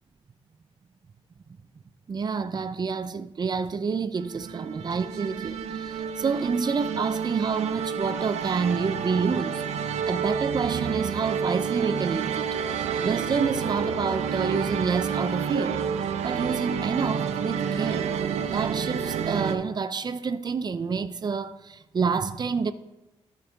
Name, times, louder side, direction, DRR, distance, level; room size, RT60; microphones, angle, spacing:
voice 1, 2.1-15.8 16.2-18.1 18.5-22.7, right 5 dB, 40° right, 0.5 m, -28 dB
sound 1, 4.2-19.5, right 7 dB, 85° right, 0.6 m, -29 dB
13.5 x 4.8 x 3.5 m
cardioid pair, 70°, 11 cm